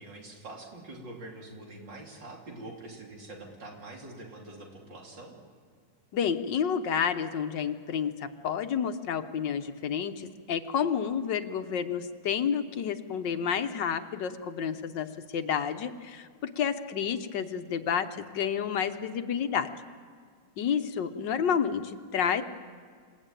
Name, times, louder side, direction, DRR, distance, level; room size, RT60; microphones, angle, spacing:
voice 1, 0.0-5.3, right 2 dB, 80° right, 0 dB, 3.7 m, -45 dB
voice 2, 6.1-19.7 20.6-22.4, left 7 dB, 80° left, 8 dB, 1.7 m, -30 dB
28.0 x 17.0 x 9.1 m, 2.1 s
omnidirectional pair, 1.9 m